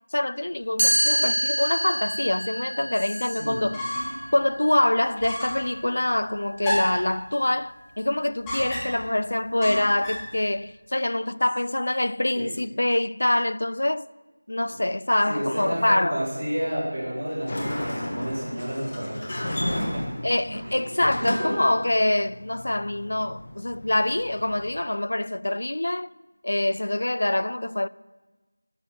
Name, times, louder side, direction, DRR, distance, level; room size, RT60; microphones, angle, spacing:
voice 1, 0.1-3.8 4.3-14.1 14.5-16.2 20.2-26.1 26.4-27.9, left 1 dB, 65° left, 0.3 m, -25 dB
Chime, 0.8-6.6, right 1 dB, 60° right, 3.5 m, -28 dB
voice 2, 3.4-3.7 12.3-12.5 14.7-14.8 15.3-20.0 20.6-20.8 21.2-21.5, equal, 40° right, 4.8 m, -30 dB
sound 1, 3.7-4.3 4.6-4.7 5.2-5.7 6.6-7.1 8.4-9.1 9.6-10.3, equal, 5° left, 1.1 m, -30 dB
Sliding door, 17.2-24.8, left 1 dB, 40° left, 2.3 m, -34 dB
13.0 x 5.6 x 8.0 m
figure-of-eight pair, 175°, 0 cm